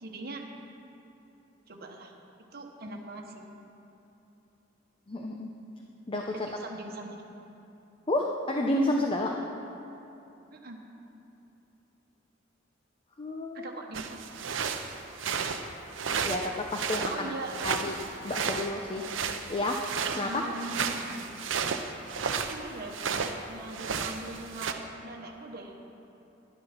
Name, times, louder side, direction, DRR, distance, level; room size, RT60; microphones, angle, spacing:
voice 1, 0.0-0.4 1.7-2.1 2.5-3.4 6.3-7.2 10.5-10.8 13.5-14.2 16.4-16.6 17.1-17.6 20.2-21.2 22.3-25.7, right 2 dB, 55° right, 1 dB, 1.2 m, -41 dB
voice 2, 5.1-5.5 6.1-6.3 8.1-9.3 13.2-13.7 16.2-17.3 17.6-17.9 18.2-19.1 19.5-19.8 20.1-20.5, left 1 dB, 30° left, 1 dB, 0.7 m, -30 dB
sound 1, 13.9-23.4 23.7-24.7, right 6 dB, 80° right, 0.7 m, -33 dB
11.0 x 11.0 x 5.9 m, 2.9 s
head